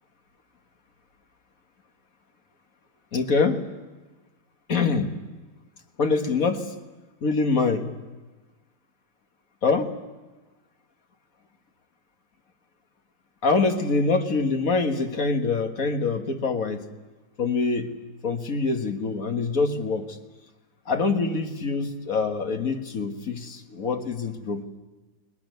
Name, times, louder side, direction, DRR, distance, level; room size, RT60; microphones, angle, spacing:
voice 1, 3.1-3.6 4.7-5.2 6.0-6.7 7.2-8.0 9.6-9.9 13.4-16.9 17.4-18.0 18.2-20.2 20.9-24.6, left 4 dB, 60° left, 5 dB, 1.9 m, -25 dB
20.5 x 20.0 x 9.3 m, 1.2 s
omnidirectional pair, 1.7 m